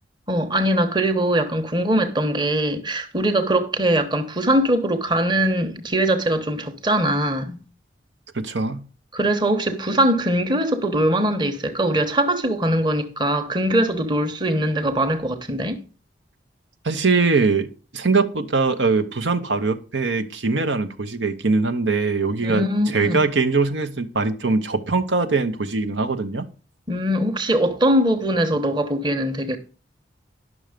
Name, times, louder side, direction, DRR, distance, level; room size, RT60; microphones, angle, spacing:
voice 1, 0.3-7.6 9.1-15.8 22.4-23.3 26.9-29.6, right 1 dB, 25° right, 1.1 m, -21 dB
voice 2, 8.3-8.8 16.8-22.6 22.9-26.5, right 4 dB, 85° right, 1.1 m, -22 dB
11.0 x 6.3 x 5.1 m
head